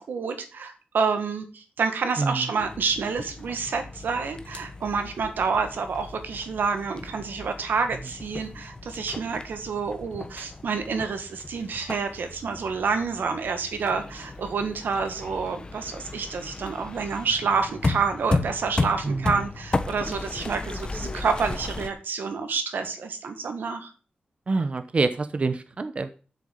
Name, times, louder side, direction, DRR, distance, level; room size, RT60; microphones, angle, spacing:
voice 1, 0.0-23.9, right 5 dB, 90° right, 7 dB, 1.9 m, -28 dB
sound 1, 2.6-21.9, left 3 dB, 30° left, 1.1 m, -34 dB
voice 2, 24.5-26.1, right 3 dB, 40° right, 9 dB, 0.8 m, -26 dB
7.7 x 7.0 x 7.9 m, 0.37 s
wide cardioid pair, 125°, 3 cm